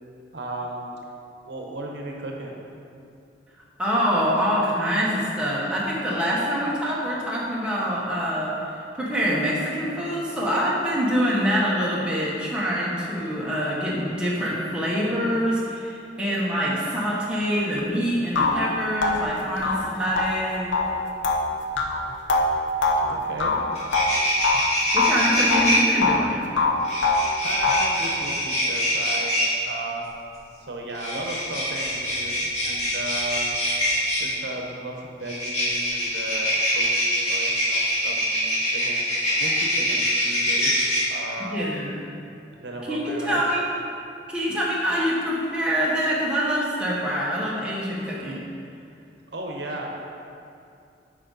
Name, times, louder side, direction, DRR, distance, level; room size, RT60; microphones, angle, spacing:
voice 1, 0.3-1.0 1.4-2.6 19.4-20.1 23.0-23.6 27.4-30.1 30.6-33.5 34.2-39.1 39.4-41.6 42.6-43.4 49.3-49.9, right 1 dB, 70° right, 0 dB, 0.9 m, -35 dB
voice 2, 3.8-20.7 24.9-26.4 41.5-42.0 42.9-43.8 44.3-48.4, equal, 5° right, -6 dB, 1.0 m, -25 dB
sound 1, 17.8-17.9 18.4-24.7 25.0-26.3 26.6-28.0, left 3 dB, 85° left, 0.7 m, -24 dB
sound 2, 23.4-23.5 23.7-25.8 26.8-29.5 30.9-34.3 35.2-41.0, equal, 35° left, 1.7 m, -24 dB
8.4 x 5.1 x 3.9 m, 2.5 s
head